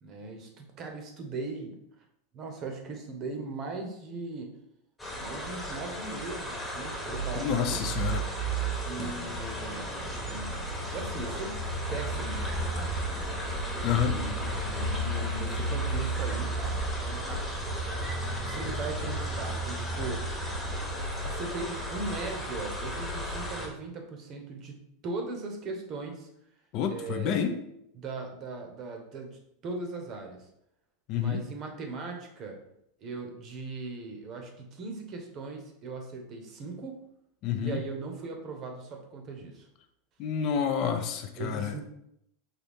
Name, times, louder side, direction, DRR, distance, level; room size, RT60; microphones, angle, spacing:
voice 1, 0.0-1.8 2.3-4.5 5.2-7.8 8.8-11.5 11.9-17.4 18.4-20.2 21.2-26.3 26.9-27.4 27.9-30.5 31.1-32.6 33.0-37.0 37.6-39.7 41.4-41.8, right 3 dB, 40° right, 3 dB, 0.8 m, -39 dB
sound 1, 5.0-23.7, right 1 dB, 5° left, 1.0 m, -33 dB
voice 2, 7.4-8.2 13.8-14.2 26.7-27.6 31.1-31.4 37.4-37.8 40.2-41.8, left 8 dB, 45° left, 7 dB, 0.4 m, -29 dB
4.0 x 2.7 x 3.5 m, 0.76 s
supercardioid pair, 135°, 0 cm